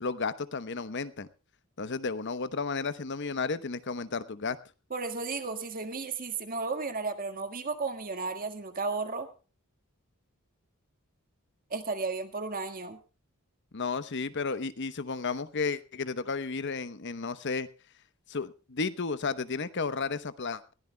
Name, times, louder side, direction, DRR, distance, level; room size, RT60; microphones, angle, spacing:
voice 1, 0.0-1.3 1.8-4.6 13.7-17.7 18.3-20.6, left 4 dB, 55° left, 13 dB, 0.9 m, -33 dB
voice 2, 4.9-9.3 11.7-13.0, right 4 dB, 40° right, 7 dB, 1.7 m, -34 dB
21.5 x 16.0 x 2.2 m, 0.34 s
head